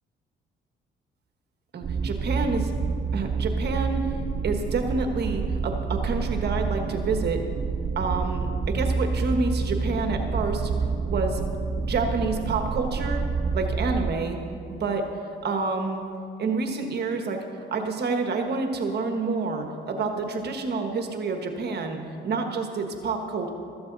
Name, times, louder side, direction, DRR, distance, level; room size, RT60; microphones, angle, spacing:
voice 1, 1.7-2.6 3.1-4.1 4.4-7.4 7.9-10.7 11.0-11.4 11.8-13.2 13.5-14.4 14.7-15.1 15.4-16.0 16.4-17.4 17.7-23.5, right 4 dB, 55° right, 4 dB, 1.3 m, -28 dB
sound 1, 1.8-14.1, right 4 dB, 30° right, 0.5 m, -28 dB
15.5 x 13.5 x 4.0 m, 2.6 s
cardioid pair, 90°, 20 cm